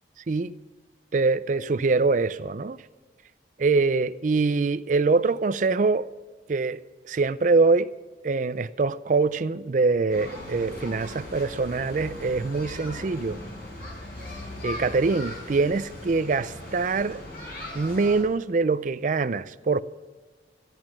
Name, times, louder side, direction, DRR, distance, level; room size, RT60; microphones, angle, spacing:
voice 1, 1.1-2.8 3.6-6.1 6.5-6.8 7.1-7.9 8.2-13.4 14.6-17.2 17.7-19.8, right 4 dB, 45° right, 0.4 m, -24 dB
sound 1, 10.1-18.2, left 1 dB, 55° left, 5.5 m, -39 dB
13.0 x 11.0 x 5.9 m
head